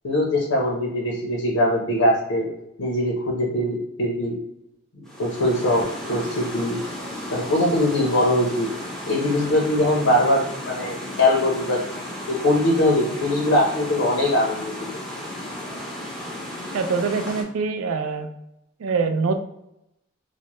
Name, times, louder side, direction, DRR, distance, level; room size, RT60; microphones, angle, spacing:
voice 1, 0.0-2.5 2.8-4.4 5.0-6.8 7.3-8.7 9.1-11.8 12.3-14.7, left 1 dB, 75° left, -2 dB, 0.7 m, -21 dB
sound 1, 5.1-17.4, left 1 dB, ahead, 0.5 m, -34 dB
voice 2, 16.7-18.3 18.8-19.3, right 4 dB, 75° right, 7 dB, 0.4 m, -24 dB
3.2 x 2.0 x 2.9 m, 0.84 s
head